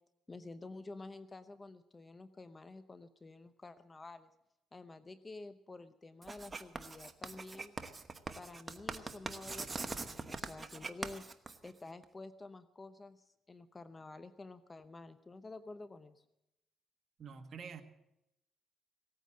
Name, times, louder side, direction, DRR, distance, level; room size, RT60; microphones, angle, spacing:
voice 1, 0.3-4.3 4.7-7.8 8.3-11.2 11.6-16.2, left 3 dB, 25° left, 12 dB, 0.8 m, -50 dB
Writing, 6.2-12.0, right 3 dB, 25° right, 1.1 m, -43 dB
voice 2, 17.2-17.8, right 6 dB, 50° right, 5 dB, 1.4 m, -47 dB
17.5 x 9.3 x 7.5 m, 0.86 s
cardioid pair, 90°, 0 cm